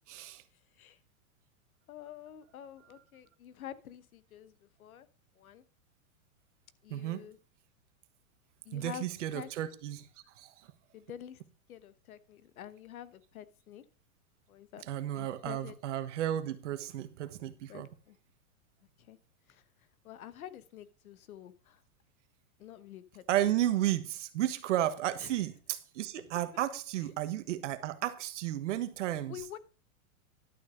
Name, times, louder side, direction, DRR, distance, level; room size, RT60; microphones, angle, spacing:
voice 1, 0.1-0.4 6.9-7.2 8.7-10.1 10.4-10.5 14.9-17.9 23.3-29.3, right 12 dB, 60° right, 1.4 m, -33 dB
voice 2, 1.9-5.1 5.3-5.6 6.8-7.4 8.6-9.5 10.9-11.4 11.7-13.8 14.5-14.8 15.1-15.8 17.7-18.2 19.0-19.2 19.5-19.6 20.0-21.8 22.6-23.6 25.2-25.4 29.3-29.6, left 10 dB, 80° left, 1.2 m, -48 dB
11.5 x 6.3 x 5.0 m
supercardioid pair, 160°, 42 cm